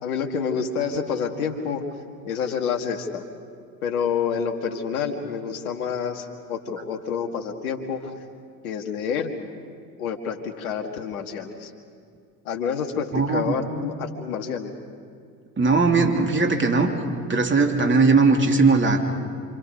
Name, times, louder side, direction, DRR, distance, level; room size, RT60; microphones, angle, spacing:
voice 1, 0.0-1.8 2.2-3.2 3.8-8.2 8.6-9.3 10.0-11.7 12.5-14.7, left 6 dB, 80° left, 4 dB, 2.1 m, -28 dB
voice 2, 13.1-13.5 15.6-16.9 17.3-19.0, right 4 dB, 25° right, 4 dB, 3.0 m, -19 dB
27.0 x 26.5 x 5.3 m, 2.2 s
hypercardioid pair, 65°, 43 cm